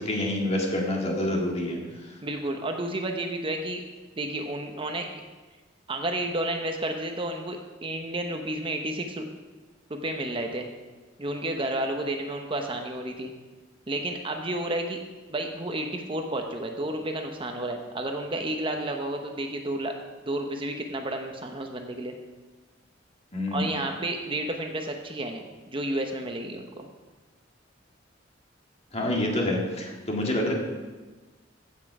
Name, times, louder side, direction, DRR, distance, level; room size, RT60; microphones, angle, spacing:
voice 1, 0.0-2.2 23.3-23.8 28.9-30.5, left 1 dB, 35° left, 0 dB, 2.1 m, -27 dB
voice 2, 2.2-3.8 4.2-5.1 5.9-9.3 9.9-10.7 11.2-13.3 13.9-15.0 15.3-19.9 20.2-22.1 23.5-26.9, right 1 dB, 30° right, 4 dB, 0.9 m, -31 dB
15.0 x 7.5 x 4.8 m, 1.3 s
head